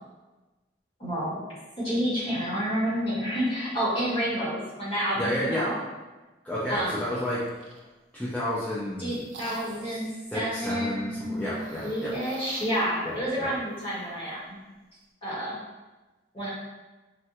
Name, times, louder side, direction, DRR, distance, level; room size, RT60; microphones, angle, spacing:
voice 1, 1.0-1.4 1.8-5.8 6.7-7.0 9.0-10.1 10.3-14.6 15.2-15.6 16.3-16.5, equal, 30° left, -10 dB, 1.2 m, -29 dB
voice 2, 5.2-5.7 6.4-7.4 8.1-9.2 9.8-10.0 10.3-12.1 13.0-13.5, equal, 5° left, -10 dB, 0.4 m, -31 dB
sound 1, 7.3-7.9 8.6-10.0 11.4-14.4, right 2 dB, 90° right, 0.4 m, -46 dB
3.3 x 2.2 x 2.8 m, 1.1 s
head